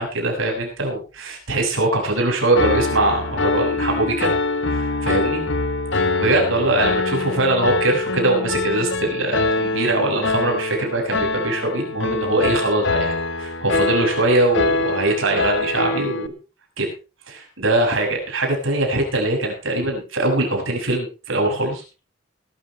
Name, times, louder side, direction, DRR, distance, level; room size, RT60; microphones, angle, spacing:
voice 1, 0.0-4.3 4.7-5.5 5.9-16.3 16.8-16.9 17.3-21.8, right 2 dB, 85° right, 1 dB, 6.9 m, -22 dB
Piano, 2.5-16.3, left 3 dB, 65° left, 1.2 m, -24 dB
20.5 x 13.0 x 3.3 m, 0.33 s
head